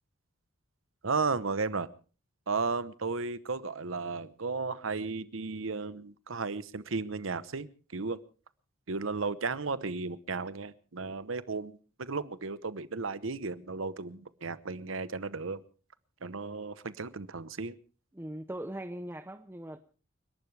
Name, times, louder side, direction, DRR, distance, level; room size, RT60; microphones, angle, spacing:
voice 1, 1.0-1.9 2.5-7.7 7.9-8.2 8.9-15.6 16.2-17.7, right 4 dB, 85° right, 1.0 m, -34 dB
voice 2, 18.1-19.8, right 1 dB, 10° right, 0.7 m, -40 dB
29.5 x 12.0 x 3.4 m
head